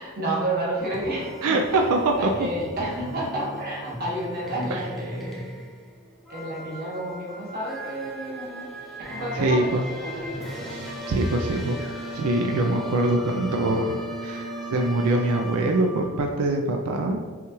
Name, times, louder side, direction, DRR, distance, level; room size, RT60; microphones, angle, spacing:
voice 1, 0.0-1.9 2.2-5.5 6.3-8.7 9.1-10.7, right 1 dB, 45° right, -5 dB, 1.1 m, -31 dB
sound 1, 0.8-16.2, equal, ahead, 0.5 m, -37 dB
voice 2, 1.4-2.3 4.7-4.8 9.4-9.8 10.7-11.8 12.1-17.2, right 2 dB, 90° right, 2 dB, 0.4 m, -24 dB
5.7 x 2.4 x 3.0 m, 1.5 s
head